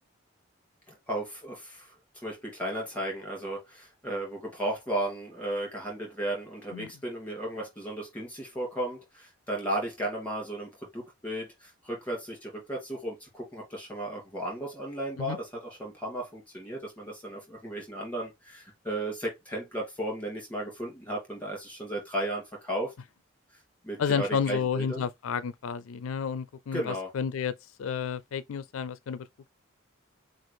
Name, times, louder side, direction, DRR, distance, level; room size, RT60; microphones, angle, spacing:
voice 1, 0.9-1.9 2.2-22.9 23.8-25.0 26.7-27.1, right 1 dB, 5° left, 2.4 m, -35 dB
voice 2, 24.0-29.3, left 6 dB, 75° left, 0.4 m, -31 dB
6.3 x 2.4 x 3.4 m
head